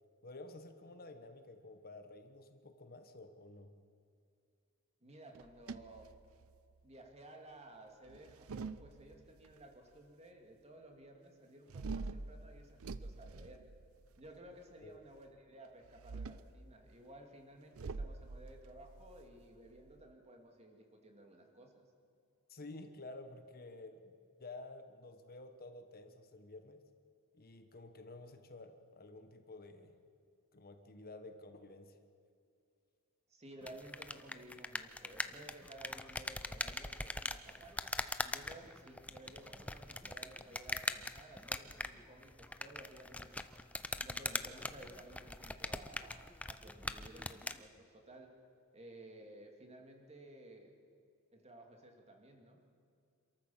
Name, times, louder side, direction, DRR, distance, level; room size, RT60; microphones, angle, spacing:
voice 1, 0.2-3.7 14.8-15.0 22.5-24.1 24.4-26.8 27.3-29.9 30.5-32.0, left 2 dB, 45° left, 7 dB, 1.3 m, -51 dB
voice 2, 5.0-6.1 6.8-13.6 14.2-21.8 33.3-37.8 38.3-43.4 44.0-48.3 48.7-50.7 51.3-52.6, right 1 dB, 30° right, 2 dB, 2.7 m, -55 dB
sound 1, 5.3-6.7 8.0-9.5 11.7-14.3 15.8-16.6 17.8-20.1, right 3 dB, 70° right, 0.6 m, -46 dB
sound 2, 33.6-47.6, left 2 dB, 5° left, 0.6 m, -42 dB
27.5 x 13.5 x 7.3 m, 2.4 s
head